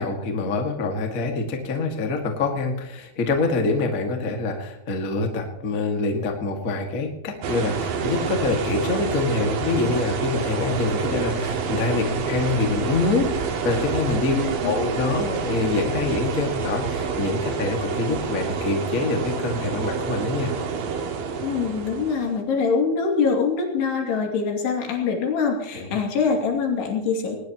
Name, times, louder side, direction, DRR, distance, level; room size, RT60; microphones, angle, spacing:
voice 1, 0.0-20.5 25.7-26.0, left 3 dB, 35° left, 2 dB, 1.4 m, -25 dB
sound 1, 7.4-22.4, right 5 dB, 65° right, 3.1 m, -28 dB
voice 2, 14.3-14.7 21.4-27.4, left 5 dB, 85° left, 1 dB, 4.7 m, -24 dB
19.5 x 19.5 x 3.0 m, 0.93 s
omnidirectional pair, 4.6 m